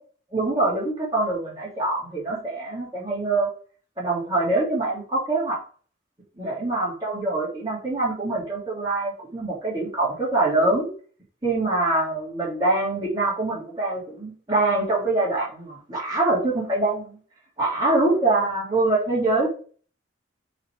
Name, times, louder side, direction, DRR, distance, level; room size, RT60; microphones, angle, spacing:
voice 1, 0.3-3.5 4.0-5.6 6.4-10.9 11.4-17.2 17.6-19.5, right 2 dB, 20° right, -8 dB, 3.5 m, -24 dB
8.6 x 4.5 x 3.6 m, 0.40 s
head